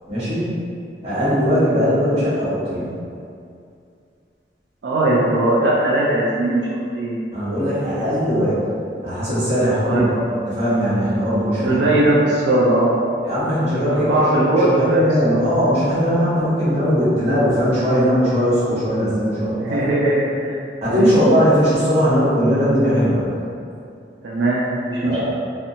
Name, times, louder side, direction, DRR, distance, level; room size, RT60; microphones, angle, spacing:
voice 1, 0.1-0.6 1.0-2.9 7.3-8.6 9.0-12.0 13.2-19.9 20.8-23.3 25.0-25.3, equal, 35° right, -12 dB, 1.0 m, -19 dB
voice 2, 4.8-6.7 6.9-7.2 9.8-10.1 11.6-13.0 14.0-15.4 19.5-20.6 20.9-21.1 24.2-25.2, right 1 dB, 80° right, -5 dB, 0.3 m, -19 dB
2.8 x 2.1 x 2.6 m, 2.4 s
head